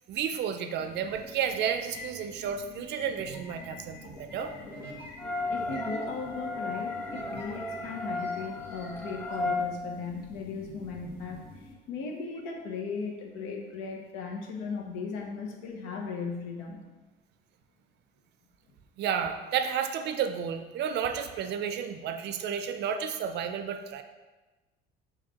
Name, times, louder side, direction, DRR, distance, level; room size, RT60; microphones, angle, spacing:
voice 1, 0.1-4.5 19.0-24.0, right 8 dB, 60° right, 7 dB, 0.5 m, -32 dB
sound 1, 0.8-11.7, left 3 dB, 50° left, 1.1 m, -50 dB
sound 2, 1.0-1.2 1.5-9.4, left 2 dB, 65° left, 1.3 m, -46 dB
sound 3, 5.2-9.7, left 2 dB, 5° left, 0.3 m, -34 dB
voice 2, 5.5-11.4 11.9-16.8, left 5 dB, 85° left, 1 dB, 0.8 m, -37 dB
6.3 x 2.4 x 2.9 m, 1.2 s
supercardioid pair, 95°, 20 cm